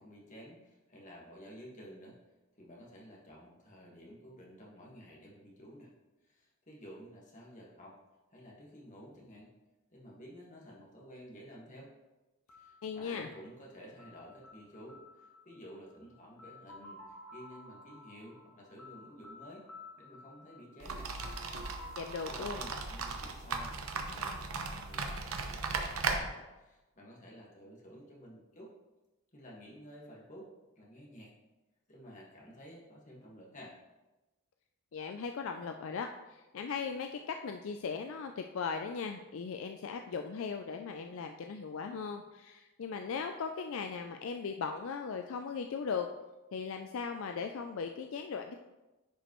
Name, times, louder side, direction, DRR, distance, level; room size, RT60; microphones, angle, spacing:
voice 1, 0.0-2.2 2.6-5.9 6.3-8.0 8.3-9.5 9.9-11.9 12.6-19.6 20.0-21.1 22.2-28.7 29.3-30.5 30.8-31.3 31.9-33.8, equal, 35° left, -3 dB, 1.6 m, -52 dB
sound 1, 12.5-24.3, left 1 dB, 80° left, 1.1 m, -54 dB
voice 2, 12.8-13.3 22.0-22.6 34.9-46.1 46.5-48.5, left 5 dB, 65° left, 5 dB, 0.4 m, -38 dB
sound 2, 20.8-26.2, right 4 dB, 75° right, 0.8 m, -37 dB
10.0 x 5.1 x 3.1 m, 1.1 s
head